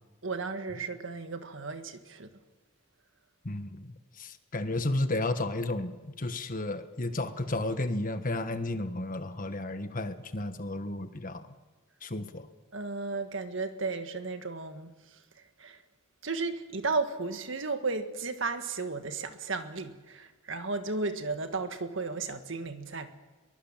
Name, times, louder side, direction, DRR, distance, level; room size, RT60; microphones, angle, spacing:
voice 1, 0.2-2.3 12.7-15.8 16.2-23.1, right 3 dB, 65° right, 1.7 m, -34 dB
voice 2, 3.4-11.5 12.0-12.5, left 2 dB, 40° left, 1.4 m, -33 dB
23.0 x 21.5 x 7.4 m
head